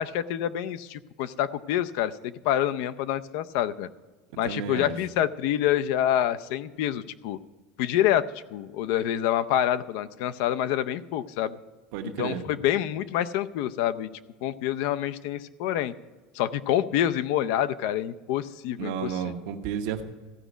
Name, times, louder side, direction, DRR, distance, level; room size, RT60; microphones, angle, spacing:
voice 1, 0.0-3.9 4.4-7.4 7.8-11.5 12.0-14.1 14.4-15.9 16.3-19.2, left 11 dB, 65° left, 13 dB, 0.5 m, -27 dB
voice 2, 4.4-4.9 11.9-12.4 18.8-20.0, right 8 dB, 70° right, 5 dB, 1.1 m, -32 dB
15.0 x 5.0 x 8.1 m, 1.3 s
cardioid pair, 150°, 0 cm